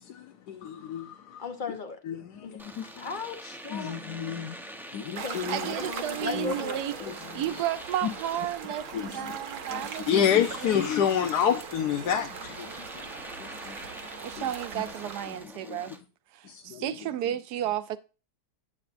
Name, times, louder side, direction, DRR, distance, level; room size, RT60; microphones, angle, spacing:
voice 1, 0.0-1.4 2.0-3.2 3.7-4.6 4.9-5.7 6.3-6.5 8.0-8.1 8.9-9.4 9.7-13.1 13.4-14.0 14.4-14.5 15.7-15.8 16.4-16.8, left 9 dB, 75° left, 1.3 m, -29 dB
voice 2, 1.4-2.0 2.4-2.6 3.0-4.0 5.2-5.5 5.9-6.8, left 4 dB, 35° left, 1.0 m, -36 dB
Domestic sounds home sounds, 2.6-16.0, equal, 5° right, 0.4 m, -46 dB
sound 1, 5.1-15.4, right 6 dB, 55° right, 1.1 m, -40 dB
voice 3, 5.5-10.9 14.2-15.9 16.3-18.0, right 11 dB, 75° right, 1.2 m, -33 dB
8.7 x 8.6 x 2.5 m
omnidirectional pair, 1.8 m